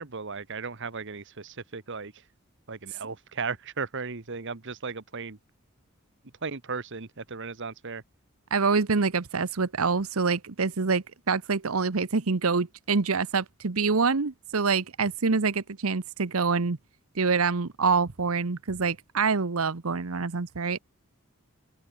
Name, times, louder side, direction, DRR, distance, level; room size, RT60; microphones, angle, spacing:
voice 1, 0.0-2.1 2.7-5.4 6.4-8.0, right 4 dB, 60° right, 1.4 m, -36 dB
voice 2, 8.5-16.8 17.2-20.8, right 4 dB, 90° right, 1.0 m, -26 dB
open air
head